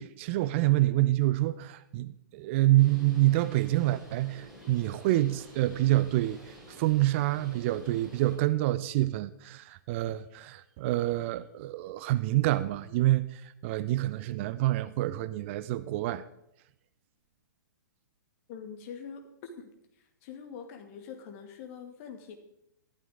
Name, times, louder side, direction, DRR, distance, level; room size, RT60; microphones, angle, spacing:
voice 1, 0.0-16.2, right 16 dB, 35° right, 15 dB, 0.6 m, -27 dB
Bird, 2.8-8.3, equal, 5° right, 5.5 m, -50 dB
voice 2, 18.5-19.7 20.0-22.4, left 6 dB, 40° left, 4 dB, 2.4 m, -44 dB
13.5 x 12.5 x 3.8 m, 0.80 s
figure-of-eight pair, 120°, 11 cm